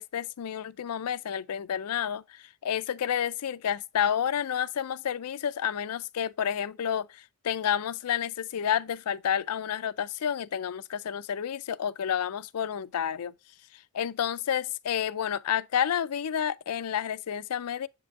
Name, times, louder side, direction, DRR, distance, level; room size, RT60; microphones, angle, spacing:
voice 1, 0.0-13.3 13.9-17.9, left 9 dB, 85° left, 0.4 m, -30 dB
7.7 x 5.1 x 2.4 m
head